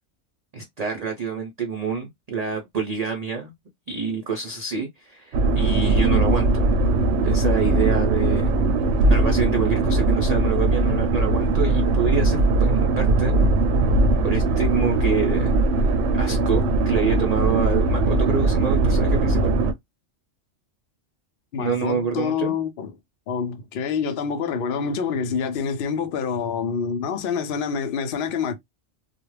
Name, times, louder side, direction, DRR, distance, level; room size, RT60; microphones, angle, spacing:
voice 1, 0.5-3.5 3.9-6.5 7.2-8.5 9.1-13.3 14.2-19.6 21.6-22.5, right 6 dB, 50° right, 0.5 m, -27 dB
sound 1, 5.3-19.7, right 2 dB, 70° right, 0.8 m, -20 dB
voice 2, 21.5-23.0 23.3-28.6, left 6 dB, 60° left, 0.6 m, -27 dB
2.4 x 2.1 x 3.1 m
omnidirectional pair, 1.3 m